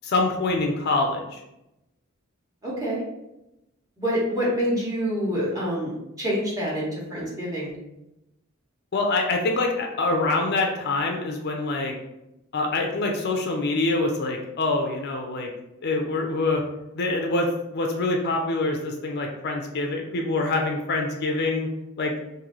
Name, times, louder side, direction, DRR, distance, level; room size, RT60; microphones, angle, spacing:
voice 1, 0.0-1.4 8.9-11.9 12.5-15.5 15.8-16.6 16.9-21.7 22.0-22.1, left 2 dB, 50° left, 2 dB, 0.5 m, -25 dB
voice 2, 2.6-3.0 4.0-7.7, equal, 15° right, -7 dB, 1.2 m, -27 dB
3.0 x 2.6 x 3.8 m, 0.91 s
head